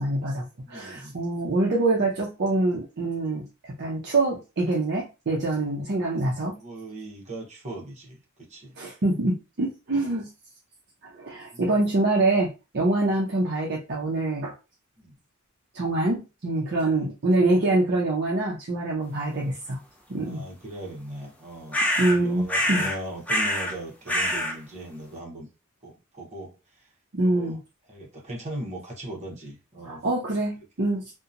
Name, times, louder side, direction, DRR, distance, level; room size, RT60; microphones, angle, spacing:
voice 1, 0.0-3.4 3.8-6.6 8.8-10.3 11.2-14.5 15.7-19.8 20.1-20.5 22.0-22.9 27.1-27.6 29.9-31.1, right 2 dB, 50° right, 0.6 m, -25 dB
voice 2, 0.6-1.2 6.6-8.8 11.5-11.8 15.0-15.2 16.8-17.0 20.2-25.5 25.8-26.9 27.2-27.6 27.9-30.0 30.6-30.7, right 1 dB, 30° right, 0.9 m, -39 dB
sound 1, 21.7-22.2 22.5-23.0 23.3-23.7 24.1-24.5, equal, 5° left, 0.4 m, -25 dB
2.8 x 2.2 x 2.5 m
head